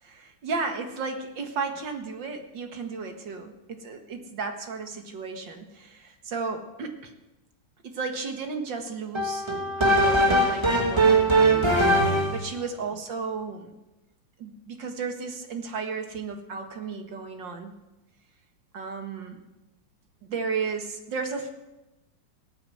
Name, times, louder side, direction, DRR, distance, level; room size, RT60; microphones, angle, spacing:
voice 1, 0.0-7.1 7.8-9.5 9.8-11.7 12.3-13.7 14.4-17.7 18.7-19.4 20.2-21.5, right 4 dB, 60° right, 5 dB, 2.3 m, -34 dB
sound 1, 9.1-12.5, right 1 dB, 15° right, 1.7 m, -21 dB
17.0 x 9.1 x 7.8 m, 0.98 s
omnidirectional pair, 2.3 m